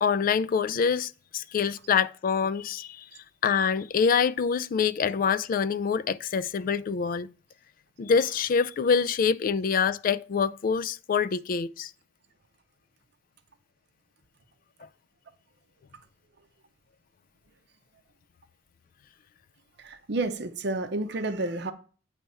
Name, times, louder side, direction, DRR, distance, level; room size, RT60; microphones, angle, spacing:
voice 1, 0.0-3.0 3.4-7.3 8.0-11.9, left 6 dB, 45° left, 0.3 m, -25 dB
voice 2, 19.8-21.7, right 2 dB, 60° right, 0.7 m, -30 dB
8.8 x 3.3 x 5.4 m
head